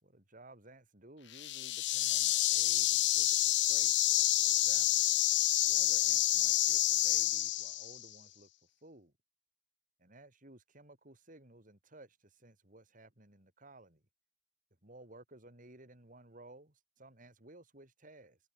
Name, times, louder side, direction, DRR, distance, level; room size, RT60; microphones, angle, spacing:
voice 1, 0.0-3.9 4.4-5.1 5.6-8.5 8.8-9.1 10.0-14.0 14.8-18.4, right 2 dB, 45° right, 5.1 m, -57 dB
sound 1, 1.3-8.0, left 15 dB, 70° left, 0.9 m, -28 dB
head